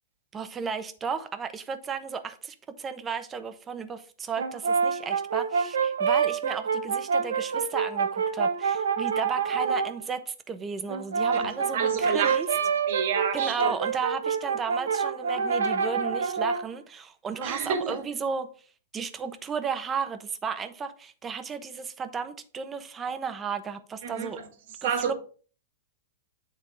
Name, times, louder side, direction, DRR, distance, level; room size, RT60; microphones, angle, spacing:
voice 1, 0.3-12.5 13.3-18.5 18.9-24.4 24.8-25.1, right 6 dB, 20° right, 0.9 m, -34 dB
Brass instrument, 4.4-9.9 10.9-16.7, right 6 dB, 85° right, 0.9 m, -27 dB
voice 2, 11.3-12.4 12.9-13.7 17.4-18.0 24.0-24.3 24.8-25.1, right 7 dB, 65° right, 1.8 m, -29 dB
9.0 x 3.6 x 4.8 m
hypercardioid pair, 125°, 0 cm